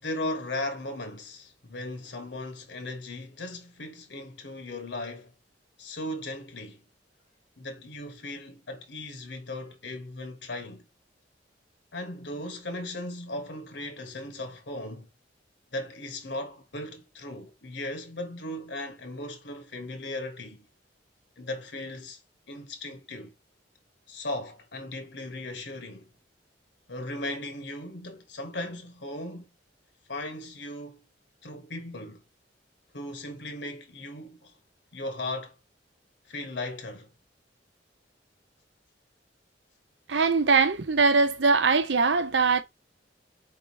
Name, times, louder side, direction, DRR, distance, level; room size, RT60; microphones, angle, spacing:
voice 1, 0.0-5.3 5.8-6.8 7.6-10.9 11.9-15.1 15.7-20.7 21.4-22.2 22.5-23.3 24.1-26.1 26.9-29.5 30.1-31.0 31.4-32.2 32.9-34.6 34.9-35.6 36.3-37.1, left 1 dB, 70° left, 1.4 m, -37 dB
voice 2, 40.1-42.6, right 4 dB, 75° right, 0.8 m, -22 dB
4.7 x 3.6 x 2.8 m
head